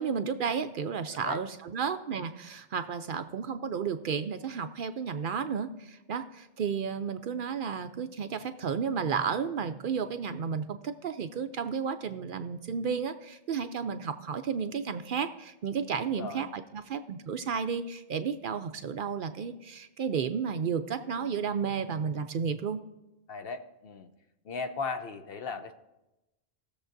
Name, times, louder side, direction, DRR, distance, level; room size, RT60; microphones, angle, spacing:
voice 1, 0.0-22.8, right 6 dB, 60° right, 9 dB, 0.6 m, -32 dB
voice 2, 16.0-16.4 23.3-24.1 24.5-25.7, left 4 dB, 65° left, 8 dB, 0.9 m, -37 dB
19.0 x 6.9 x 2.6 m, 0.95 s
omnidirectional pair, 1.1 m